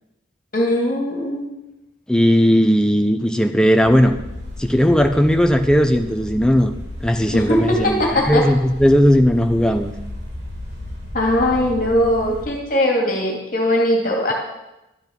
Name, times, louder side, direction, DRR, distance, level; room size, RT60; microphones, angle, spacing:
voice 1, 0.5-1.5 7.3-8.5 11.1-14.3, left 1 dB, 45° left, 0 dB, 2.4 m, -20 dB
voice 2, 2.1-4.1 4.6-6.7 7.0-9.9, equal, 5° left, 6 dB, 0.6 m, -16 dB
sound 1, 3.8-12.5, left 1 dB, 65° right, 3.4 m, -34 dB
12.0 x 8.8 x 5.3 m, 0.95 s
head